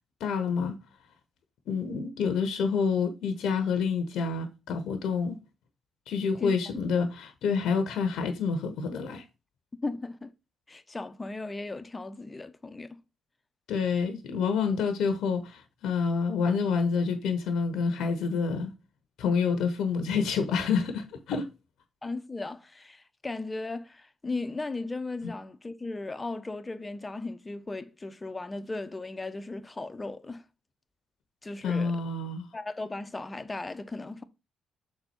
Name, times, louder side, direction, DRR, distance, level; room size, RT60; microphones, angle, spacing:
voice 1, 0.2-0.7 1.7-5.4 6.1-9.2 13.7-18.7 19.2-21.4 31.6-32.5, left 5 dB, 70° left, 1.0 m, -28 dB
voice 2, 9.7-10.3 10.7-13.0 22.0-30.4 31.4-32.0 32.5-34.2, left 3 dB, 25° left, 0.9 m, -36 dB
6.4 x 4.4 x 4.4 m
hypercardioid pair, 45°, 0 cm